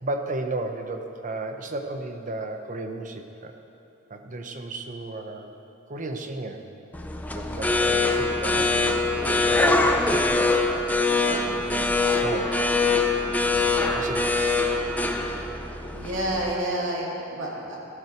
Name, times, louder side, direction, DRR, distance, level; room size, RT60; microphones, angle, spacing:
voice 1, 0.0-3.6 4.1-5.5 5.9-6.7 7.3-10.3 11.3-12.7 13.9-14.4 16.5-16.6, right 2 dB, 40° right, 5 dB, 0.9 m, -34 dB
sound 1, 6.9-16.5, left 3 dB, 10° left, 0.6 m, -23 dB
voice 2, 15.9-17.8, right 1 dB, 70° right, -3 dB, 2.6 m, -29 dB
14.0 x 13.0 x 4.6 m, 2.8 s
head